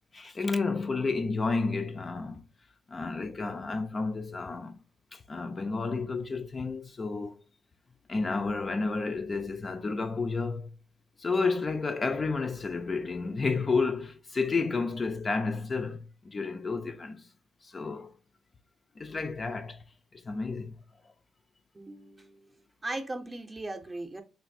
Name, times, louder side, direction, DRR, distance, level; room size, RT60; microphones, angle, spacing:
voice 1, 0.1-2.4 2.9-4.8 5.1-7.4 8.1-10.8 11.2-17.3 17.6-18.1 19.0-19.8 20.1-20.8, left 4 dB, 30° left, 0.3 m, -31 dB
voice 2, 21.7-24.2, right 2 dB, 20° right, 0.5 m, -38 dB
3.0 x 2.5 x 2.5 m
cardioid pair, 90°, 0 cm